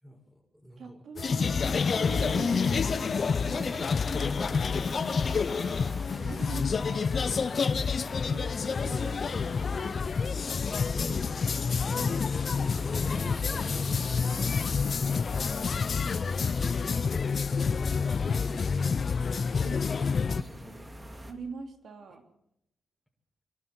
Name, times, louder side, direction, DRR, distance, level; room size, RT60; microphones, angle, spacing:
voice 1, 0.0-1.0 5.6-5.8 7.9-8.4 10.8-14.5 14.9-18.9 19.5-20.9, equal, 5° right, 5 dB, 6.1 m, -46 dB
voice 2, 0.8-7.2 7.9-8.5 8.8-10.4 19.6-19.9 21.2-22.2, right 5 dB, 75° right, 5 dB, 3.1 m, -44 dB
sound 1, 1.2-20.4, left 5 dB, 55° left, 0.7 m, -28 dB
sound 2, 2.0-21.3, right 1 dB, 25° right, 3.0 m, -46 dB
26.0 x 12.0 x 9.1 m, 0.81 s
cardioid pair, 65°, 0 cm